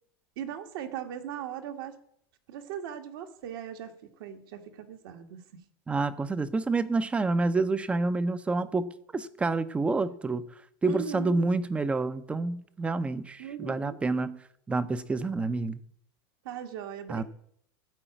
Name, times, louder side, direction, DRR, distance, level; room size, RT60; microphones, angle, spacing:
voice 1, 0.4-1.9 2.5-5.6 10.8-11.5 13.4-14.0 16.4-17.2, right 9 dB, 65° right, 1.6 m, -39 dB
voice 2, 5.9-10.4 10.8-14.4 14.7-15.8 17.1-17.2, right 3 dB, 10° right, 0.6 m, -28 dB
14.0 x 4.9 x 9.0 m
supercardioid pair, 150°, 12 cm